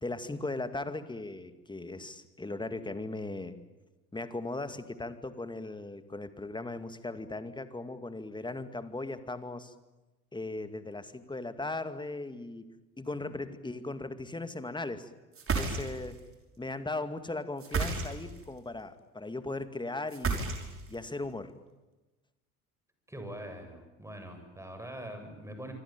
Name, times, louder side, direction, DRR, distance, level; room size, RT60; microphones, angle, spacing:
voice 1, 0.0-3.6 4.1-9.7 10.3-12.7 13.0-15.1 15.6-16.2 16.6-20.5 20.9-21.5, left 2 dB, 10° left, 10 dB, 2.3 m, -38 dB
sound 1, 15.3-16.2 17.6-18.4 20.1-21.0, right 4 dB, 30° right, 6.1 m, -31 dB
voice 2, 23.1-25.7, right 1 dB, 5° right, 6 dB, 7.8 m, -43 dB
25.5 x 25.5 x 9.1 m, 1.1 s
figure-of-eight pair, 70°, 44 cm